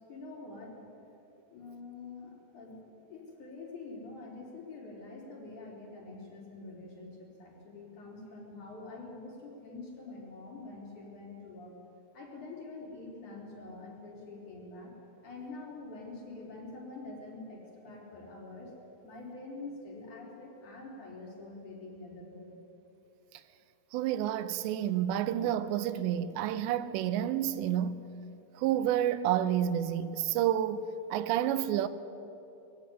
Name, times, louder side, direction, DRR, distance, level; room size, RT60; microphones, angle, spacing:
voice 1, 0.1-1.0 1.5-11.7 12.1-14.9 15.2-18.7 19.0-22.5, left 3 dB, 45° left, 5.1 m, -46 dB
voice 2, 23.9-28.0 28.5-31.9, right 11 dB, 85° right, 3.1 m, -29 dB
21.5 x 16.0 x 9.9 m
omnidirectional pair, 4.9 m